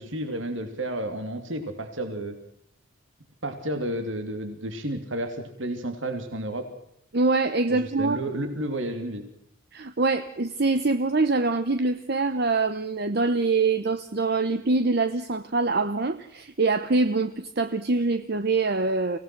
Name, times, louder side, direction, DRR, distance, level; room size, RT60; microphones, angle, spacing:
voice 1, 0.0-2.3 3.4-6.6 7.7-9.2, right 1 dB, 65° right, 7 dB, 2.9 m, -31 dB
voice 2, 7.1-8.2 9.7-19.2, right 3 dB, 50° right, 11 dB, 0.9 m, -24 dB
25.0 x 17.5 x 6.0 m, 0.70 s
head